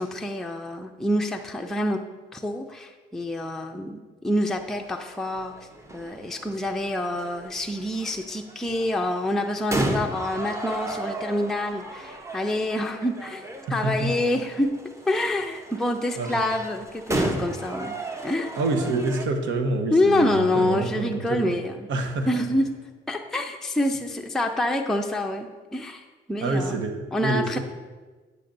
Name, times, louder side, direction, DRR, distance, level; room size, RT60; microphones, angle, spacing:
voice 1, 0.0-2.0 2.3-14.7 15.1-17.9 18.2-18.5 19.9-21.9 22.3-22.7 23.1-26.8 27.1-27.6, left 1 dB, ahead, 3 dB, 0.5 m, -27 dB
sound 1, 4.6-19.3, right 1 dB, 15° right, 0.8 m, -34 dB
voice 2, 18.6-21.5 21.9-22.3 26.4-27.6, right 3 dB, 75° right, 5 dB, 1.0 m, -27 dB
9.9 x 6.6 x 2.6 m, 1.4 s
cardioid pair, 90°, 20 cm